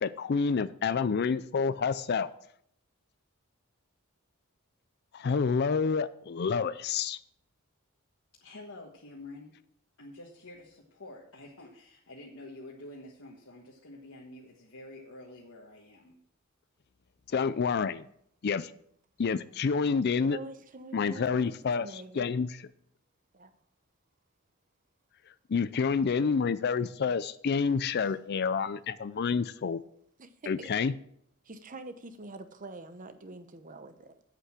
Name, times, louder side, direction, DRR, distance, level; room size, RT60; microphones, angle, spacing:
voice 1, 0.0-2.3 5.1-7.2 17.3-18.0 18.4-18.7 19.2-20.4 20.9-22.5 25.5-29.8 30.5-30.9, left 5 dB, 50° left, 15 dB, 0.4 m, -28 dB
voice 2, 8.3-9.5 10.0-16.2, left 2 dB, 75° left, -2 dB, 1.5 m, -48 dB
voice 3, 20.2-22.3 23.3-23.5 30.2-30.7 31.4-34.2, right 2 dB, 40° right, 10 dB, 0.9 m, -45 dB
8.1 x 8.1 x 6.1 m, 0.68 s
head